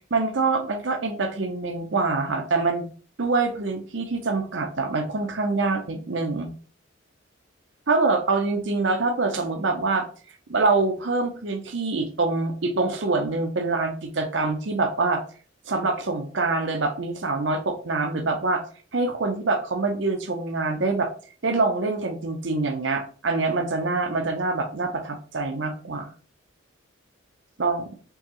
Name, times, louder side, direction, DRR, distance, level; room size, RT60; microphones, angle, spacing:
voice 1, 0.1-2.8 3.2-6.5 7.9-10.1 10.5-15.2 15.7-18.6 18.9-21.1 21.4-26.1 27.6-27.9, right 3 dB, 60° right, 5 dB, 0.7 m, -25 dB
4.6 x 3.2 x 3.0 m, 0.42 s
head